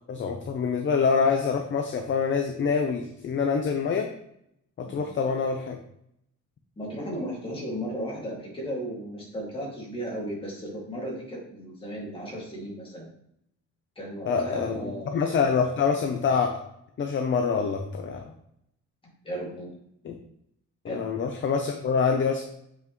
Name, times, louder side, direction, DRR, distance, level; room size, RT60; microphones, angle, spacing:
voice 1, 0.1-4.1 4.8-5.8 14.3-16.6 17.0-18.3 20.0-20.1 20.8-22.4, left 5 dB, 35° left, 4 dB, 0.6 m, -26 dB
voice 2, 6.8-13.1 14.0-15.4 19.2-19.7 20.8-21.0, equal, 15° left, -4 dB, 2.2 m, -35 dB
7.3 x 5.8 x 3.1 m, 0.75 s
cardioid pair, 170°, 32 cm